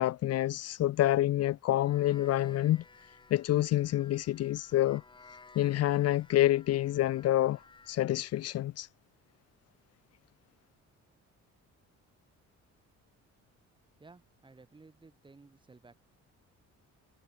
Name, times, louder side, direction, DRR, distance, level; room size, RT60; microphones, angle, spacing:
voice 1, 0.0-2.8 3.3-5.0 5.6-7.6 7.9-8.9, left 14 dB, 60° left, 0.6 m, -27 dB
sound 1, 1.8-8.0, left 4 dB, 15° left, 1.8 m, -57 dB
voice 2, 14.0-16.0, right 3 dB, 15° right, 3.7 m, -56 dB
cardioid pair, 165°, 29 cm